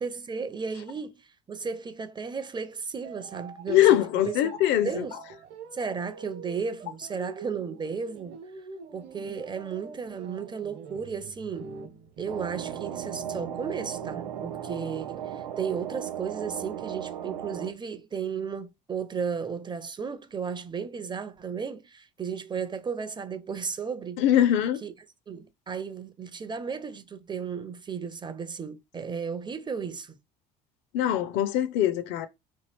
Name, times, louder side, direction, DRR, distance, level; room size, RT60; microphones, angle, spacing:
voice 1, 0.0-4.0 4.2-4.5 4.8-5.2 5.7-8.4 8.9-11.7 12.2-24.2 24.8-24.9 25.3-30.2, right 6 dB, 20° right, 0.5 m, -34 dB
sound 1, 3.0-16.0, right 5 dB, 60° right, 0.9 m, -45 dB
voice 2, 3.7-5.1 24.2-24.8 30.9-32.3, left 12 dB, 60° left, 0.5 m, -22 dB
sound 2, 12.3-17.7, right 10 dB, 90° right, 0.5 m, -36 dB
3.0 x 2.4 x 3.3 m
hypercardioid pair, 70°, 21 cm